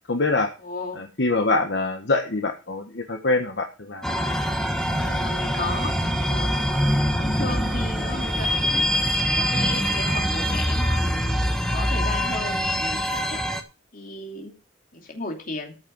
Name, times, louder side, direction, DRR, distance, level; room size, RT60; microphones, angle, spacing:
voice 1, 0.1-0.5 1.0-4.2, left 3 dB, 60° left, 3 dB, 1.4 m, -24 dB
voice 2, 0.6-1.1 4.9-6.7 7.2-8.9 9.4-11.4 11.7-13.5 13.9-14.5 14.9-15.7, left 2 dB, 45° left, 2 dB, 2.9 m, -34 dB
sound 1, 4.0-13.6, equal, 5° left, 1.2 m, -24 dB
sound 2, 4.8-10.3, right 1 dB, 25° right, 4.6 m, -35 dB
14.0 x 6.8 x 5.3 m, 0.33 s
head